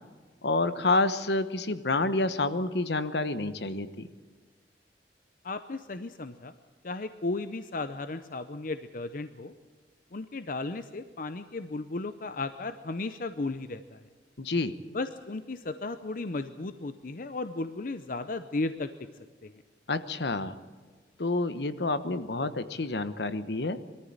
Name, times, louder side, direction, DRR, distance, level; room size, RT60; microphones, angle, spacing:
voice 1, 0.4-4.1 14.4-14.7 19.9-20.5 21.2-23.8, left 2 dB, 70° left, 12 dB, 1.1 m, -28 dB
voice 2, 5.4-6.5 6.8-9.5 10.1-14.0 14.9-18.9 19.4-19.5, left 3 dB, 50° left, 11 dB, 0.7 m, -35 dB
22.0 x 14.0 x 8.7 m, 1.5 s
head